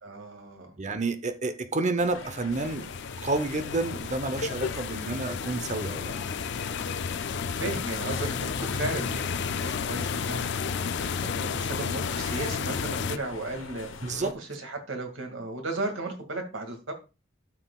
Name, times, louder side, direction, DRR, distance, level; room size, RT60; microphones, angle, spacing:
voice 1, 0.0-0.8 4.8-4.9 7.3-13.9 14.2-16.9, right 2 dB, 75° right, 2.2 m, -35 dB
voice 2, 0.8-2.9 3.2-6.1 14.0-14.3, right 3 dB, 40° right, 0.9 m, -29 dB
sound 1, 2.0-14.3, left 3 dB, 80° left, 1.0 m, -41 dB
sound 2, 2.5-13.2, left 6 dB, 60° left, 0.5 m, -32 dB
13.0 x 6.2 x 2.4 m
head